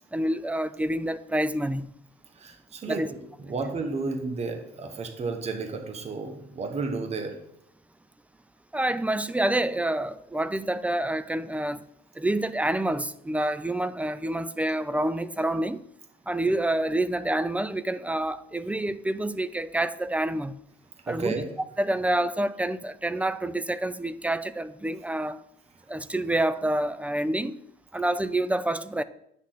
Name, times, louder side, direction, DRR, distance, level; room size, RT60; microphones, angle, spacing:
voice 1, 0.1-1.9 2.9-3.1 8.7-11.8 12.2-15.8 16.3-20.6 21.1-21.3 21.8-25.4 25.9-27.6 27.9-29.0, right 1 dB, 10° right, 0.4 m, -27 dB
voice 2, 2.3-3.2 3.4-7.4 21.1-21.5, right 4 dB, 40° right, 1.4 m, -32 dB
9.8 x 6.4 x 4.0 m
cardioid pair, 110°, 17 cm